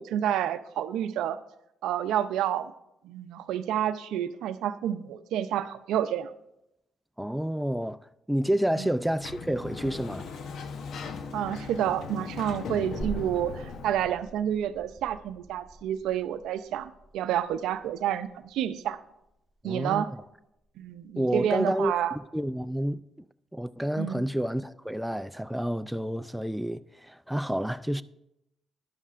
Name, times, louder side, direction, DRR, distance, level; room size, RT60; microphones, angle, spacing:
voice 1, 0.0-1.4 1.8-2.7 3.0-6.3 8.8-8.9 11.3-19.0 19.6-20.1 20.8-22.1 24.0-24.2, right 10 dB, 85° right, 0.5 m, -29 dB
voice 2, 7.2-8.0 8.3-10.3 19.6-20.2 21.2-23.0 23.5-28.0, equal, 5° right, 0.3 m, -29 dB
Sliding door, 8.9-14.2, left 5 dB, 70° left, 0.8 m, -39 dB
sound 1, 13.0-20.3 20.6-20.7, right 2 dB, 15° left, 4.0 m, -45 dB
13.0 x 11.0 x 2.5 m
cardioid pair, 90°, 0 cm